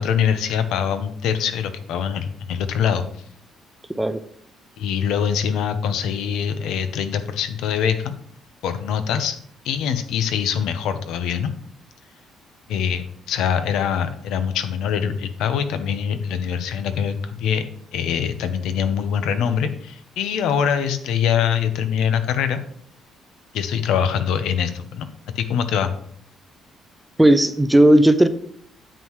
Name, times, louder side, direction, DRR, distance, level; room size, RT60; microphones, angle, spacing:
voice 1, 0.0-3.0 4.8-8.2 8.6-9.4 9.6-11.5 12.7-17.6 17.9-22.6 23.5-25.1 25.3-25.9, left 8 dB, 80° left, 10 dB, 0.9 m, -23 dB
voice 2, 27.2-28.3, right 1 dB, 5° right, 11 dB, 0.4 m, -14 dB
9.1 x 7.6 x 3.1 m, 0.64 s
cardioid pair, 160°, 0 cm